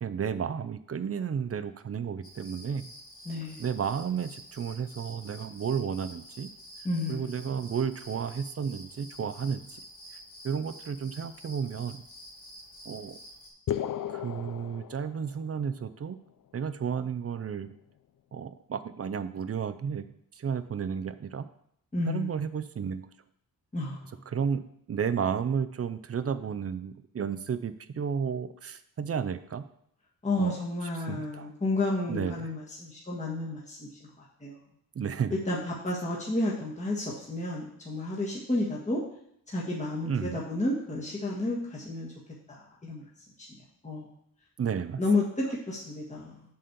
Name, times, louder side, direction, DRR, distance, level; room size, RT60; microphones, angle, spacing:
voice 1, 0.0-2.9 3.6-6.5 7.1-9.8 10.4-12.0 12.9-13.2 14.1-16.2 16.5-17.7 18.3-20.1 20.3-21.4 22.1-23.0 24.3-24.6 24.9-29.6 30.4-30.6 31.1-31.5 32.1-32.5 34.9-35.4 40.1-40.4 44.6-45.0, right 7 dB, 40° right, 11 dB, 0.5 m, -32 dB
sound 1, 2.2-13.5, equal, 90° left, 3.2 m, -49 dB
voice 2, 3.2-3.6 6.8-7.5 21.9-22.4 23.7-24.2 30.2-33.9 34.2-34.6 35.3-39.0 39.5-42.1 42.5-43.0 43.8-44.1 45.0-46.3, left 2 dB, 20° left, -5 dB, 1.5 m, -31 dB
sound 2, 13.7-15.6, left 10 dB, 60° left, 0.5 m, -34 dB
7.5 x 4.3 x 6.7 m, 0.71 s
wide cardioid pair, 110°, 36 cm